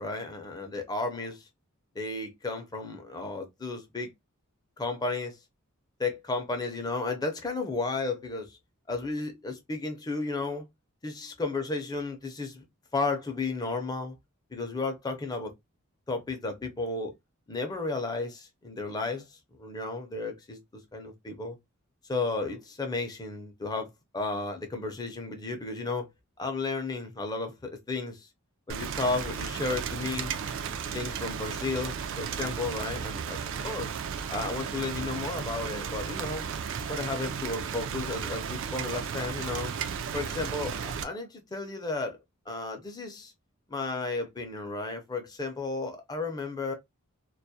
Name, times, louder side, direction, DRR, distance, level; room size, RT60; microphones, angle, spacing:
voice 1, 0.0-1.5 1.9-4.1 4.8-5.4 6.0-8.6 8.9-10.6 11.0-12.6 12.9-14.2 14.5-15.5 16.1-17.1 17.5-21.6 22.1-23.9 24.1-26.1 26.4-28.3 28.7-30.3 30.9-33.4 33.6-33.9 34.3-36.5 36.9-39.7 40.1-42.2 42.5-43.3 43.7-46.7, left 3 dB, 20° left, 0.5 m, -33 dB
Rain, 28.7-41.0, right 7 dB, 60° right, 0.3 m, -34 dB
2.3 x 2.0 x 2.6 m
head